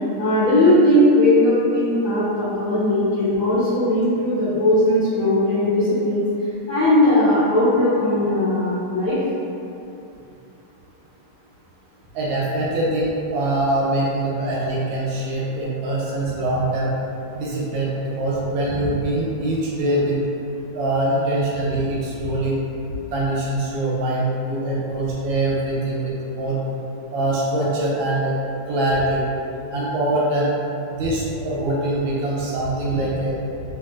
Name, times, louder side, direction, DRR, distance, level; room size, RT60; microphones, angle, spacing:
voice 1, 0.2-6.2 6.7-9.2, left 1 dB, 65° left, -13 dB, 0.8 m, -18 dB
voice 2, 12.1-16.9 17.3-20.2 20.7-22.6 23.1-26.6 27.1-28.4 28.7-29.2 29.7-30.5 30.9-33.3, right 1 dB, 75° right, -6 dB, 1.3 m, -23 dB
3.1 x 2.9 x 2.4 m, 2.8 s
omnidirectional pair, 2.4 m